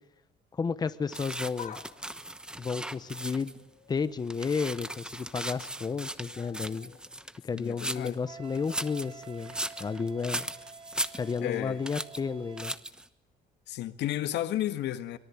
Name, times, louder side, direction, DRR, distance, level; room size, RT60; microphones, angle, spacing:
voice 1, 0.5-1.8 2.6-3.5 3.9-7.0 7.4-10.5 11.2-12.7, left 5 dB, 25° left, 1.0 m, -32 dB
sound 1, 1.1-3.6 4.0-8.2 8.5-11.6 11.9-12.2 12.6-13.1, right 1 dB, 5° right, 1.1 m, -38 dB
sound 2, 1.5-4.2 4.5-5.0 5.3-9.2 9.6-9.7 10.7-10.8, left 8 dB, 45° left, 3.2 m, -52 dB
voice 2, 7.5-8.2 11.4-11.8 13.7-15.2, left 13 dB, 75° left, 1.8 m, -32 dB
Wind instrument woodwind instrument, 8.2-12.8, right 6 dB, 30° right, 1.3 m, -49 dB
24.5 x 22.5 x 8.5 m
cardioid pair, 150°, 18 cm